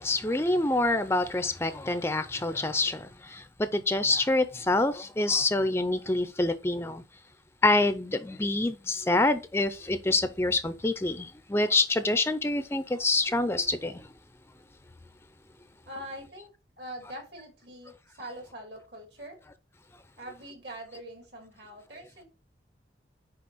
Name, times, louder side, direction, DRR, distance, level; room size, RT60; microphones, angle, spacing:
voice 1, 0.0-3.4 3.7-7.0 7.6-14.1, left 2 dB, 15° left, 0.4 m, -26 dB
voice 2, 15.9-16.5 16.8-19.4 20.2-22.2, right 1 dB, 65° right, 2.5 m, -43 dB
6.1 x 5.0 x 5.5 m
head